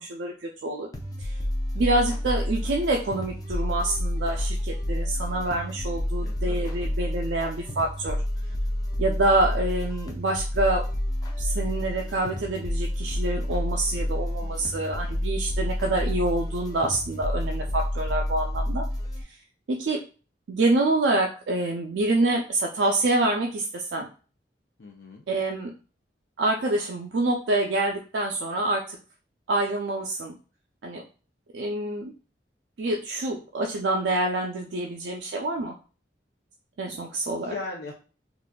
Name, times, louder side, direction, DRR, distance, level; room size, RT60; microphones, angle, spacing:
voice 1, 0.0-0.9 1.2-1.4 1.7-8.2 9.0-10.8 11.4-18.8 19.7-20.0 20.5-24.1 25.3-25.7 26.4-29.0 29.5-30.3 30.8-31.0 31.5-32.1 32.8-35.7 36.8-37.5, right 2 dB, 75° right, 1 dB, 0.4 m, -26 dB
sound 1, 0.9-19.2, left 1 dB, 20° left, 0.5 m, -29 dB
voice 2, 6.2-6.7 14.4-14.8 24.8-25.2 37.4-37.9, left 3 dB, 80° left, 0 dB, 0.6 m, -39 dB
3.9 x 2.4 x 2.2 m, 0.36 s
head